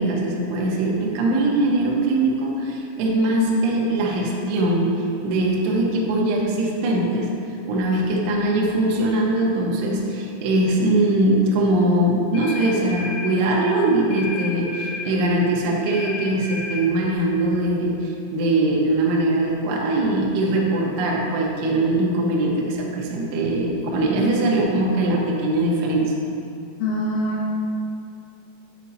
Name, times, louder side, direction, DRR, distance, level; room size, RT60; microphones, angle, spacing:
voice 1, 0.0-7.3 7.7-26.1, right 1 dB, 80° right, -2 dB, 2.6 m, -21 dB
sound 1, 12.3-13.3 14.1-15.1 15.9-16.8, left 4 dB, 55° left, 2.4 m, -32 dB
voice 2, 26.8-27.6, equal, 80° left, -4 dB, 2.6 m, -24 dB
9.5 x 5.6 x 2.7 m, 2.6 s
omnidirectional pair, 5.6 m